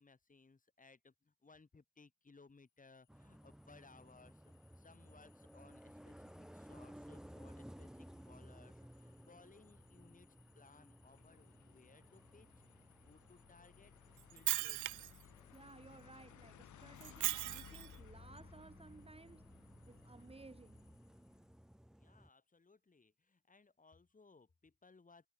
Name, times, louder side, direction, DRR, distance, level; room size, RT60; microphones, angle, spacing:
voice 1, 0.0-10.3 10.5-12.8 13.1-13.9 14.3-15.3 21.9-25.3, left 4 dB, 25° left, 7.1 m, -64 dB
sound 1, 3.0-21.6, left 12 dB, 75° left, 4.8 m, -63 dB
sound 2, 3.1-22.3, equal, ahead, 1.2 m, -58 dB
Shatter, 14.2-15.2 17.0-18.0, right 18 dB, 80° right, 0.6 m, -38 dB
voice 2, 15.5-19.5 19.9-20.9, right 3 dB, 20° right, 2.2 m, -58 dB
cardioid pair, 90°, 30 cm